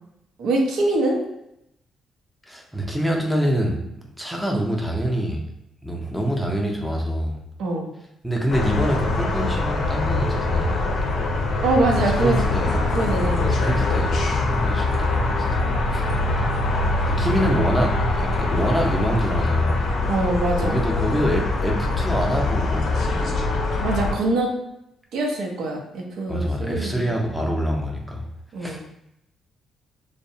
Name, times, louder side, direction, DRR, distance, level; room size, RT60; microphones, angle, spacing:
voice 1, 0.4-1.2 7.6-7.9 11.6-12.5 12.9-13.6 20.1-20.8 23.8-24.5 25.1-27.1 28.5-28.8, right 2 dB, 75° right, 0 dB, 0.6 m, -23 dB
voice 2, 2.5-5.4 5.8-7.4 8.2-11.2 12.0-12.8 13.6-15.6 15.9-16.0 17.1-19.8 20.6-23.5 26.3-28.3 28.6-28.8, equal, ahead, -1 dB, 0.5 m, -25 dB
sound 1, 8.5-24.1, left 2 dB, 65° left, 0.5 m, -23 dB
2.6 x 2.0 x 2.6 m, 0.82 s
cardioid pair, 90°, 0 cm